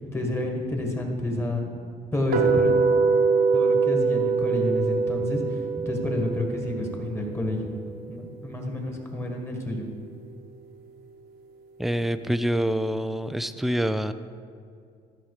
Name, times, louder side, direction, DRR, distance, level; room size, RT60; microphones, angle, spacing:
voice 1, 0.1-1.7 2.1-2.7 3.5-7.7 8.1-9.9, left 2 dB, 15° left, 2 dB, 1.6 m, -29 dB
sound 1, 2.3-8.4, right 5 dB, 70° right, 1.2 m, -24 dB
voice 2, 11.8-14.1, equal, ahead, 11 dB, 0.3 m, -26 dB
13.0 x 5.8 x 4.9 m, 2.3 s
cardioid pair, 110°, 17 cm